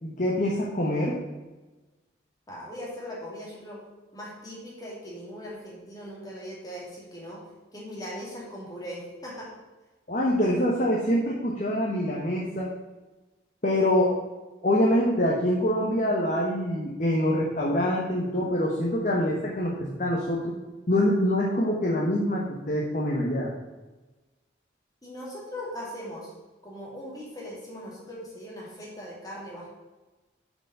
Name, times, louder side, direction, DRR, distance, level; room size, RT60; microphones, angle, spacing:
voice 1, 0.0-1.2 10.1-12.7 13.6-14.1 14.6-20.5 20.9-23.5, left 1 dB, 40° left, -3 dB, 1.2 m, -25 dB
voice 2, 2.5-3.8 4.1-7.4 7.7-9.5 25.0-26.3 26.6-29.7, equal, 20° left, -5 dB, 2.6 m, -39 dB
7.0 x 5.2 x 6.9 m, 1.1 s
head